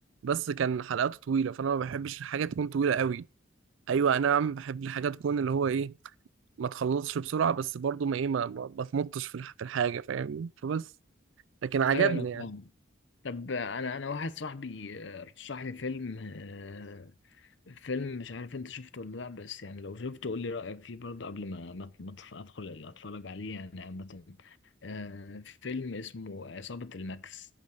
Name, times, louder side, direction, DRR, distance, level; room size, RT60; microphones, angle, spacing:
voice 1, 0.2-3.3 3.9-5.9 6.6-10.9 11.6-12.4, right 7 dB, 75° right, 0.4 m, -29 dB
voice 2, 11.9-12.7 13.2-24.6 24.8-27.5, left 4 dB, 65° left, 0.7 m, -38 dB
8.7 x 5.1 x 7.8 m
head